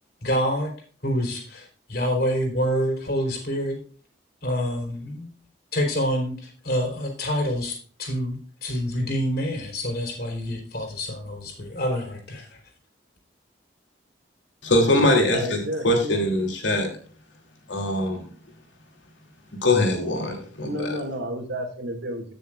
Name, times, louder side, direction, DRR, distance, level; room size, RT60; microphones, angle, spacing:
voice 1, 0.2-0.7 1.0-3.8 4.4-5.3 5.7-12.6, equal, 55° left, 2 dB, 3.6 m, -27 dB
voice 2, 14.6-16.9 17.7-18.2 19.6-20.9, left 1 dB, 85° left, 2 dB, 3.1 m, -22 dB
voice 3, 15.3-16.2 20.6-22.2, equal, 70° right, 3 dB, 2.1 m, -31 dB
16.5 x 6.5 x 2.4 m, 0.42 s
head